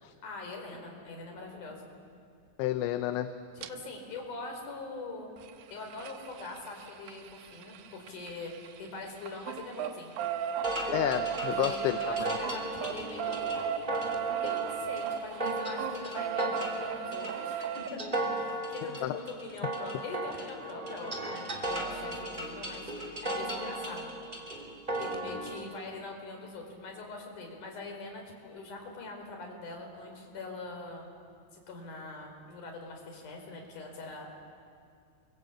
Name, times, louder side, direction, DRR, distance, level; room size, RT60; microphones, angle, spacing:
voice 1, 0.2-1.9 3.6-5.3 5.7-8.5 8.8-10.1 11.5-13.6 14.4-24.1 24.4-24.7 25.0-31.2 31.5-34.4, left 3 dB, 45° left, 1 dB, 5.7 m, -43 dB
voice 2, 2.6-3.3 10.9-12.3 19.0-19.2, left 13 dB, 80° left, 9 dB, 3.0 m, -30 dB
sound 1, 3.6-3.7 5.4-8.9 9.2-17.9 19.6-19.7 19.9-20.0 20.3-20.4, right 9 dB, 80° right, 2.1 m, -35 dB
sound 2, 10.6-25.6, right 1 dB, 15° right, 2.0 m, -36 dB
29.0 x 24.0 x 8.6 m, 2.4 s
omnidirectional pair, 5.4 m